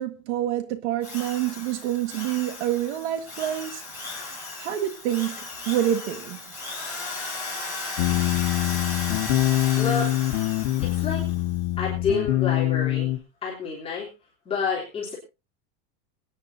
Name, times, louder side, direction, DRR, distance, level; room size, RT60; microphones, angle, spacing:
voice 1, 0.0-3.8 4.6-6.4, right 12 dB, 75° right, 1.8 m, -27 dB
Drill, 1.0-11.4, left 3 dB, 5° right, 6.2 m, -36 dB
sound 1, 8.0-13.2, left 15 dB, 75° left, 1.5 m, -24 dB
voice 2, 9.8-10.1 10.8-11.2 11.8-13.1 13.4-14.1 14.4-15.1, left 5 dB, 15° left, 3.5 m, -28 dB
26.5 x 9.8 x 2.7 m
supercardioid pair, 160°, 34 cm